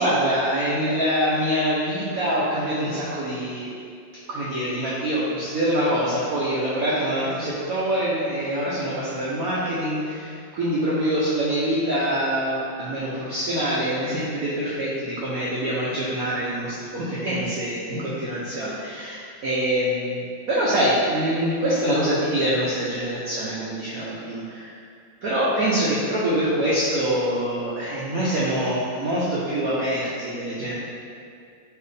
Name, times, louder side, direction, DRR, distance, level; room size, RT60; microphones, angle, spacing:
voice 1, 0.0-3.7 4.3-24.7 25.2-30.7, right 1 dB, 70° right, -8 dB, 0.8 m, -25 dB
4.6 x 2.9 x 3.2 m, 2.4 s
omnidirectional pair, 2.2 m